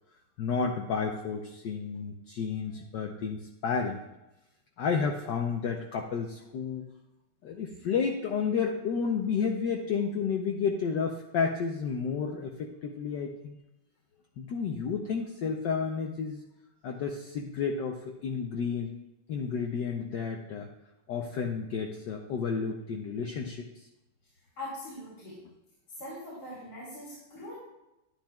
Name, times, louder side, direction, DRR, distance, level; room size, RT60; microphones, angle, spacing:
voice 1, 0.4-4.0 4.8-6.9 7.4-13.6 14.4-16.4 16.8-18.9 19.3-20.7 21.1-23.8, left 6 dB, 65° left, 1 dB, 1.2 m, -31 dB
voice 2, 24.6-25.4 26.0-27.5, left 1 dB, 90° left, -7 dB, 4.2 m, -41 dB
11.5 x 10.5 x 2.3 m, 0.94 s
omnidirectional pair, 2.4 m